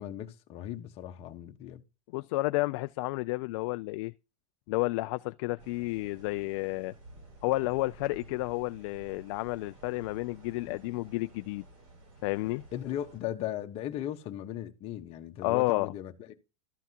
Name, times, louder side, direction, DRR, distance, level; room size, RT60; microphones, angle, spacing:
voice 1, 0.0-1.8 12.7-16.4, left 11 dB, 35° left, 1.2 m, -37 dB
voice 2, 2.1-4.1 4.7-6.9 7.4-11.6 12.2-12.6 15.4-15.9, left 21 dB, 55° left, 0.4 m, -31 dB
sound 1, 5.6-13.2, right 2 dB, 60° right, 6.4 m, -52 dB
13.5 x 5.8 x 2.9 m
supercardioid pair, 145°, 18 cm